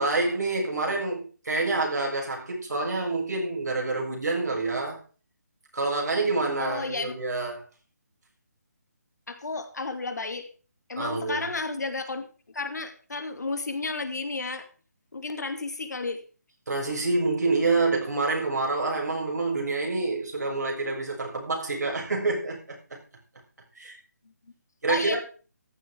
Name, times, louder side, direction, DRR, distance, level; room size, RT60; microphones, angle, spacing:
voice 1, 0.0-5.0 5.7-7.7 10.9-11.5 16.7-23.0 23.8-24.0 24.8-25.2, right 3 dB, 75° right, -1 dB, 6.8 m, -27 dB
voice 2, 6.6-7.2 9.3-10.5 10.9-12.2 12.5-14.7 15.1-16.2 24.9-25.2, left 3 dB, 75° left, 7 dB, 2.6 m, -32 dB
14.5 x 11.5 x 3.6 m, 0.38 s
figure-of-eight pair, 155°, 9 cm